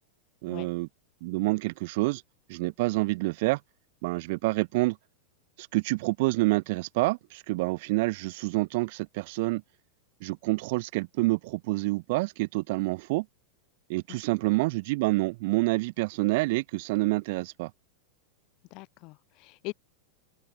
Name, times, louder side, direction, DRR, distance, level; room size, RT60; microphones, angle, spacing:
voice 1, 0.4-0.9 1.2-2.2 2.5-3.6 4.0-5.0 5.7-9.6 10.2-13.2 13.9-17.7, right 23 dB, 50° right, 1.3 m, -27 dB
voice 2, 14.1-14.4 18.7-19.7, left 25 dB, 40° left, 2.7 m, -42 dB
figure-of-eight pair, 90°, 0 cm